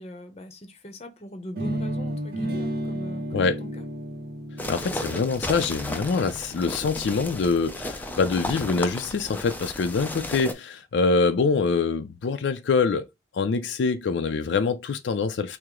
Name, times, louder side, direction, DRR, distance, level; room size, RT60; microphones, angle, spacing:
voice 1, 0.0-3.8, equal, 35° left, 0.7 m, -41 dB
sound 1, 1.6-7.5, equal, 55° right, 0.9 m, -33 dB
sound 2, 4.6-10.5, left 1 dB, 10° left, 0.4 m, -34 dB
voice 2, 4.7-13.1 13.3-15.6, left 4 dB, 80° left, 0.4 m, -25 dB
4.6 x 2.0 x 3.7 m
head